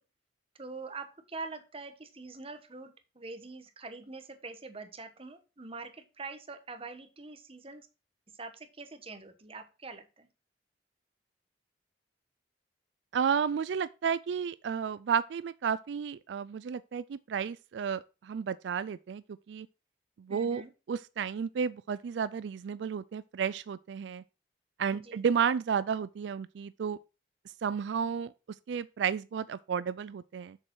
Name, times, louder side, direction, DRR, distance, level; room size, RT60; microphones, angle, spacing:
voice 1, 0.6-7.9 8.3-10.3 20.3-20.7 24.9-25.2, right 3 dB, 35° right, 1.2 m, -44 dB
voice 2, 13.1-19.7 20.2-20.6 20.9-24.2 24.8-27.0 27.6-28.3 28.7-30.6, right 7 dB, 85° right, 0.4 m, -32 dB
7.3 x 6.6 x 4.6 m
head